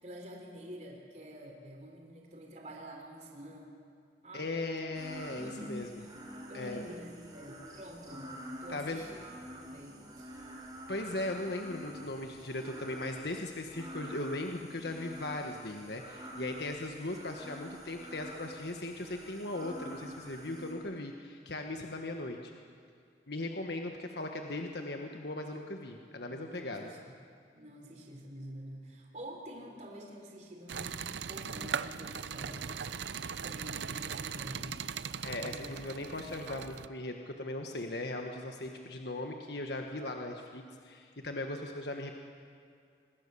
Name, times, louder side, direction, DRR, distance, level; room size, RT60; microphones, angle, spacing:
voice 1, 0.0-3.7 4.2-4.5 5.3-6.2 6.5-8.3 8.6-9.2 9.5-10.6 26.3-27.1 27.5-31.0 31.3-32.8 33.4-34.8 35.5-35.7, equal, 40° right, 0 dB, 3.6 m, -47 dB
voice 2, 4.3-5.9 6.5-6.9 8.7-9.0 10.9-22.5 23.3-26.9 35.2-42.1, left 2 dB, 65° left, 3 dB, 1.5 m, -38 dB
sound 1, 4.9-20.7, equal, 20° right, 4.0 m, -47 dB
sound 2, 30.7-36.9, right 6 dB, 75° right, 0.7 m, -39 dB
26.0 x 21.0 x 7.0 m, 2.4 s
head